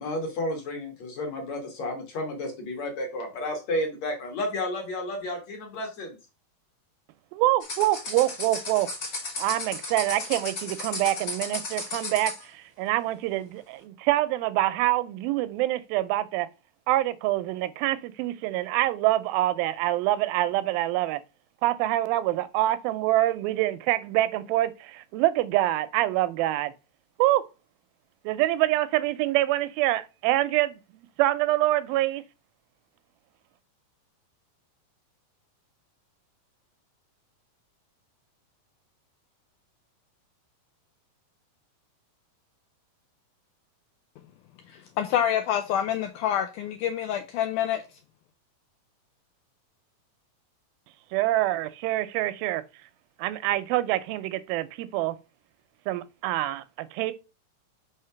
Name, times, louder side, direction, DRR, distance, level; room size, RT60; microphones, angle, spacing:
voice 1, 0.0-6.2, left 1 dB, 55° left, 2.4 m, -32 dB
voice 2, 7.3-8.9 9.4-16.5 16.9-21.2 21.6-26.7 27.2-27.4 28.3-32.2 51.1-52.6 53.2-55.2 55.9-57.1, right 15 dB, 85° right, 2.3 m, -25 dB
sound 1, 7.6-12.4, left 3 dB, 35° left, 1.6 m, -35 dB
voice 3, 44.7-47.8, left 10 dB, 80° left, 1.8 m, -27 dB
5.7 x 3.2 x 5.6 m
omnidirectional pair, 4.1 m